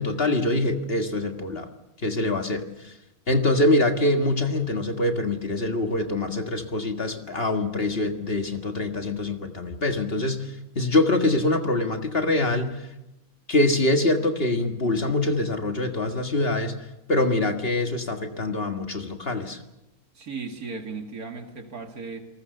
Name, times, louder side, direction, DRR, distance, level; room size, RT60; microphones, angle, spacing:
voice 1, 0.0-1.7 2.0-2.9 3.3-12.8 13.5-16.7 17.1-19.6, left 2 dB, 40° left, 5 dB, 1.9 m, -24 dB
voice 2, 20.1-22.2, right 4 dB, 80° right, 5 dB, 2.8 m, -36 dB
28.5 x 19.0 x 6.7 m, 0.92 s
omnidirectional pair, 1.5 m